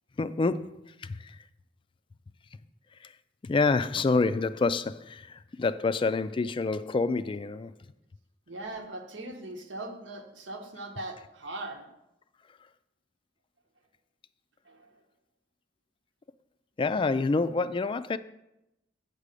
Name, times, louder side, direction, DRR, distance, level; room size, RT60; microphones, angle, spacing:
voice 1, 0.2-1.4 3.0-3.1 3.4-7.7 16.8-18.2, left 3 dB, 30° left, 0.3 m, -27 dB
voice 2, 8.5-11.9 14.6-14.9, right 2 dB, 90° right, 1.3 m, -40 dB
8.2 x 4.9 x 6.7 m
head